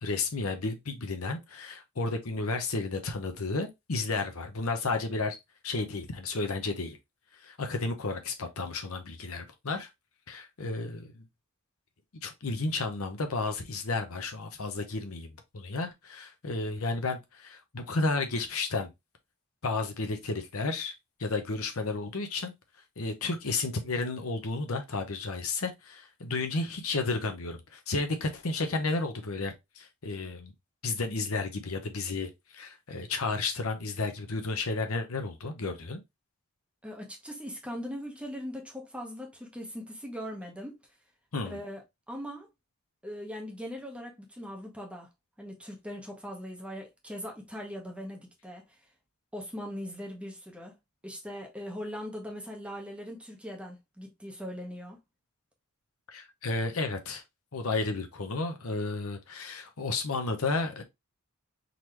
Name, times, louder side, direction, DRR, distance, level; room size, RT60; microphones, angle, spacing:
voice 1, 0.0-5.4 5.6-7.0 7.3-9.9 10.3-11.2 12.2-18.9 19.6-20.9 21.2-22.5 23.0-30.5 30.8-36.0 41.3-41.6 56.1-57.2 57.5-60.8, left 3 dB, 70° left, 0.9 m, -32 dB
voice 2, 36.8-40.8 41.5-41.8 42.1-42.5 43.0-45.1 45.4-48.8 49.3-50.7 51.0-55.0, equal, 5° right, 1.1 m, -40 dB
3.9 x 3.0 x 3.2 m
head